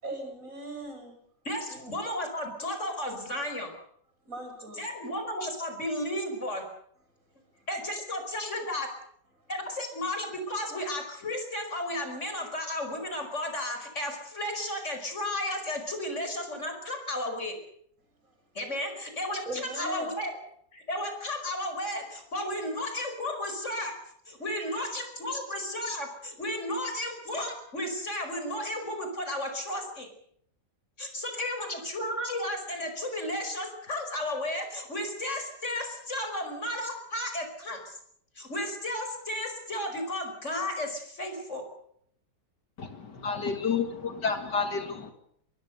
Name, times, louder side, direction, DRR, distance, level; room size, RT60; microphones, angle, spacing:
voice 1, 0.0-1.1 1.7-1.9 4.2-4.8 7.6-7.7 19.5-20.1 24.6-24.9, right 2 dB, 45° right, 4 dB, 7.7 m, -39 dB
voice 2, 1.4-3.7 4.8-6.6 7.7-8.9 9.5-17.6 18.6-20.3 20.7-24.0 24.3-30.1 31.0-38.0 38.4-41.6, left 1 dB, 40° left, 5 dB, 5.6 m, -33 dB
voice 3, 43.2-45.1, left 5 dB, 70° left, 7 dB, 2.6 m, -29 dB
23.0 x 22.0 x 6.8 m, 0.67 s
omnidirectional pair, 1.9 m